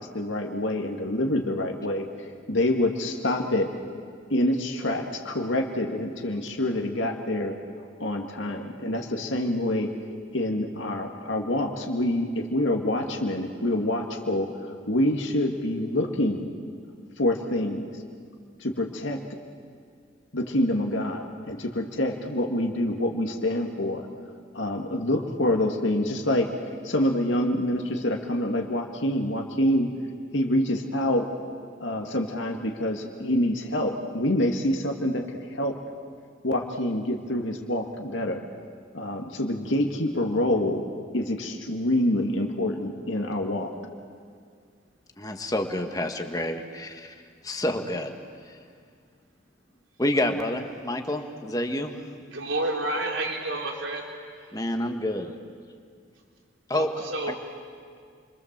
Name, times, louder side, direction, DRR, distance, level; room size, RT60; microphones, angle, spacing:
voice 1, 0.0-2.1 2.5-3.7 4.3-7.6 8.0-9.9 10.3-14.5 14.9-16.5 17.2-17.9 18.6-19.2 20.3-24.1 24.5-26.5 26.8-29.9 30.3-31.3 31.8-35.2 35.5-35.8 36.4-38.4 38.9-40.9 41.1-43.7, left 1 dB, 75° left, 2 dB, 2.0 m, -26 dB
voice 2, 45.2-47.2 47.4-48.1 48.5-48.6 50.0-52.0 54.5-55.4 56.7-57.4, left 1 dB, 20° left, 5 dB, 1.5 m, -28 dB
voice 3, 52.3-54.0 56.7-57.4, right 2 dB, 75° right, 1 dB, 3.5 m, -29 dB
29.0 x 23.0 x 7.4 m, 2.1 s
head